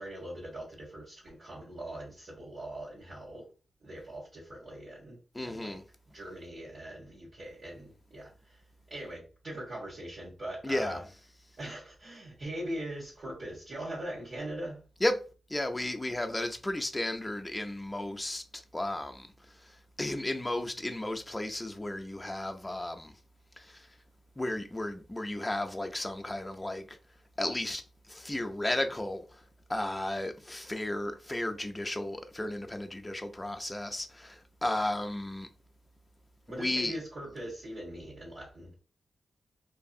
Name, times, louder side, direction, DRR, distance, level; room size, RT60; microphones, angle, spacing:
voice 1, 0.0-3.4 3.8-5.2 5.4-5.8 6.1-8.6 8.9-11.0 11.6-14.8 36.5-38.7, right 1 dB, 65° right, 1.3 m, -41 dB
voice 2, 5.3-5.8 10.6-11.0 15.0-15.2 15.5-19.3 20.0-23.1 23.6-23.9 24.4-27.0 27.4-29.4 29.7-35.5 36.5-36.9, left 1 dB, 20° left, 0.5 m, -34 dB
2.6 x 2.4 x 2.4 m
cardioid pair, 50°, 0 cm